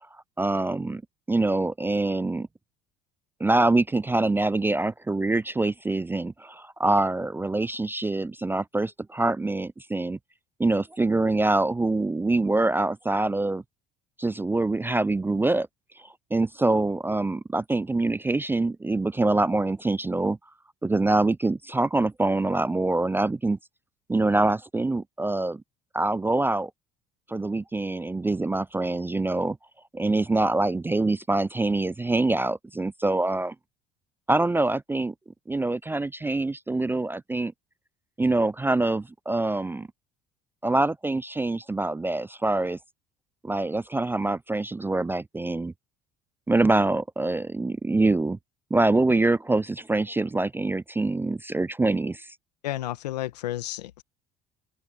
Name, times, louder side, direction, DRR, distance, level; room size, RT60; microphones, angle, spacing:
voice 1, 0.4-1.0 1.3-2.5 3.4-10.2 10.6-13.6 14.2-15.7 16.3-20.4 20.8-23.6 24.1-25.6 25.9-26.7 27.3-29.6 29.9-33.5 34.3-35.1 35.5-37.5 38.2-39.9 40.6-42.8 43.4-45.7 46.5-48.4 48.7-52.3, right 2 dB, 10° right, 0.3 m, -25 dB
voice 2, 52.6-54.0, left 14 dB, 90° left, 1.8 m, -32 dB
open air
hypercardioid pair, 70°, 20 cm